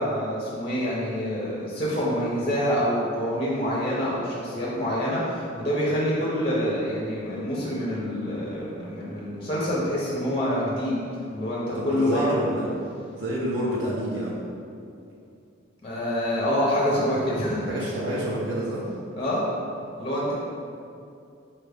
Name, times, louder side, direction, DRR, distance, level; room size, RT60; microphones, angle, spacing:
voice 1, 0.0-11.0 11.3-12.4 13.3-13.4 15.8-17.9 19.2-19.4 20.0-20.3, equal, 25° left, -6 dB, 0.5 m, -26 dB
voice 2, 11.7-14.4 17.7-18.8, right 1 dB, 60° right, -5 dB, 0.5 m, -29 dB
4.2 x 2.3 x 3.3 m, 2.5 s
head